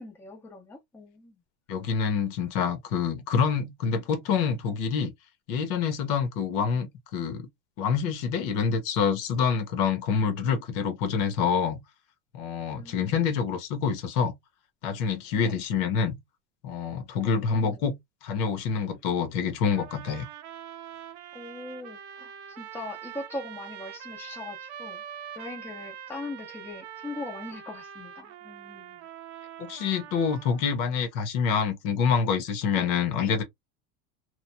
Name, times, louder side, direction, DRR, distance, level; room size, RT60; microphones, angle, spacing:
voice 1, 0.0-1.4 12.7-13.2 15.4-15.6 17.2-17.8 21.3-25.0 25.4-29.0 32.8-32.9, left 2 dB, 5° left, 0.7 m, -41 dB
voice 2, 1.7-5.1 5.5-7.5 7.8-11.8 12.3-14.3 14.8-16.2 16.6-17.9 18.2-20.3 29.6-33.4, left 6 dB, 55° left, 1.0 m, -27 dB
sound 1, 19.7-30.7, right 10 dB, 80° right, 0.8 m, -43 dB
3.1 x 2.4 x 2.2 m
supercardioid pair, 155°, 33 cm